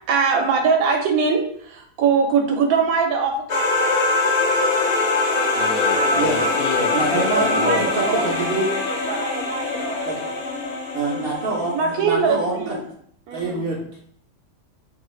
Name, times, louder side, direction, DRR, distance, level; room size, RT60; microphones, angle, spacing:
voice 1, 0.1-3.9 7.1-8.3 9.1-10.3 11.7-12.8 13.3-13.6, right 5 dB, 85° right, 4 dB, 1.1 m, -22 dB
sound 1, 3.5-12.1, left 2 dB, 60° left, 0.6 m, -23 dB
voice 2, 5.5-8.4, left 6 dB, 80° left, 3 dB, 1.0 m, -29 dB
voice 3, 6.9-8.7 10.1-10.2 10.9-12.8 13.3-13.8, right 3 dB, 60° right, -2 dB, 0.6 m, -25 dB
2.7 x 2.3 x 3.0 m, 0.64 s
omnidirectional pair, 1.5 m